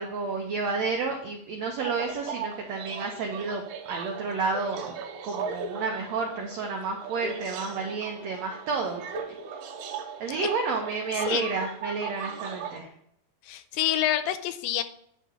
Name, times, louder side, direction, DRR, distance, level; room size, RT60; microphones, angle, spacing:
voice 1, 0.0-5.0 5.2-9.0 10.2-12.9, right 4 dB, 90° right, 2 dB, 1.5 m, -31 dB
sound 1, 1.8-12.8, right 5 dB, 70° right, 2.0 m, -38 dB
voice 2, 13.4-14.8, left 12 dB, 85° left, 11 dB, 2.4 m, -27 dB
9.1 x 3.7 x 6.8 m, 0.72 s
omnidirectional pair, 4.2 m